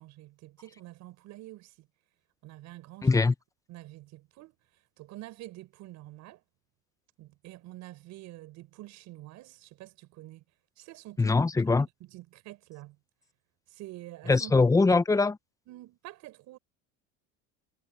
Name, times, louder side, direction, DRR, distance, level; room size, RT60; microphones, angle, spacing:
voice 1, 0.0-1.9 2.4-3.2 3.7-6.4 7.2-10.4 10.8-11.4 11.8-13.0 13.7-14.6 15.7-16.6, right 17 dB, 60° right, 5.9 m, -47 dB
voice 2, 3.0-3.3 11.2-11.9 14.3-15.4, left 3 dB, 10° left, 0.8 m, -22 dB
supercardioid pair, 125°, 32 cm